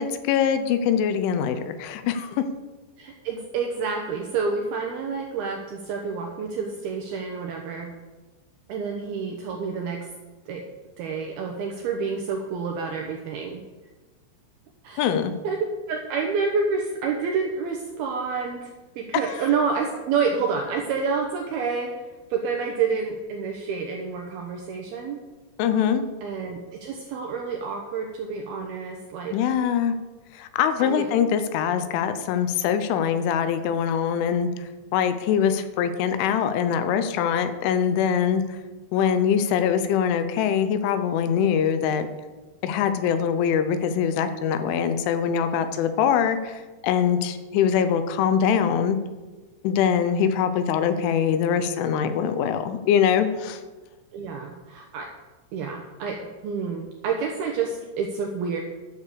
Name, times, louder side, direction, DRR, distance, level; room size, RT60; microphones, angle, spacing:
voice 1, 0.0-2.4 15.0-15.3 25.6-26.0 29.3-29.9 30.3-34.6 34.9-38.6 38.9-42.1 42.6-49.0 49.6-53.6, left 8 dB, 80° left, 10 dB, 3.1 m, -23 dB
voice 2, 3.0-7.9 8.7-10.1 10.5-10.6 11.0-13.6 14.8-15.2 15.4-15.6 15.9-18.7 19.0-22.0 22.3-25.2 26.2-29.4 30.8-31.1 49.9-50.3 54.1-55.1 55.5-58.6, right 5 dB, 75° right, 2 dB, 2.3 m, -28 dB
11.5 x 7.2 x 6.8 m, 1.3 s
omnidirectional pair, 5.7 m